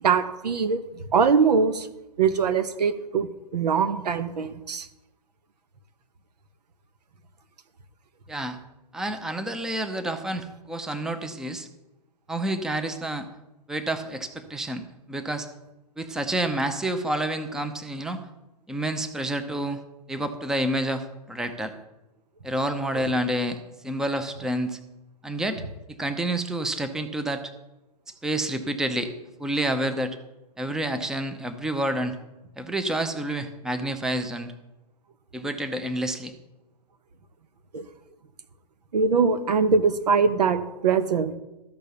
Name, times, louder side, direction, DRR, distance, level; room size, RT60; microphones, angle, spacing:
voice 1, 0.0-0.8 1.1-1.9 2.2-4.9 22.9-23.1 37.7-37.8 38.9-41.3, right 5 dB, 80° right, 11 dB, 1.0 m, -22 dB
voice 2, 8.9-11.7 12.3-13.3 13.7-15.5 16.0-18.2 18.7-19.8 20.1-21.7 22.4-23.6 23.8-24.8 25.2-25.6 25.9-27.4 28.2-29.1 29.4-30.2 30.6-32.2 32.6-34.5 35.3-36.3, right 1 dB, 5° right, 9 dB, 0.6 m, -29 dB
13.5 x 5.3 x 6.9 m, 1.0 s
hypercardioid pair, 130°, 21 cm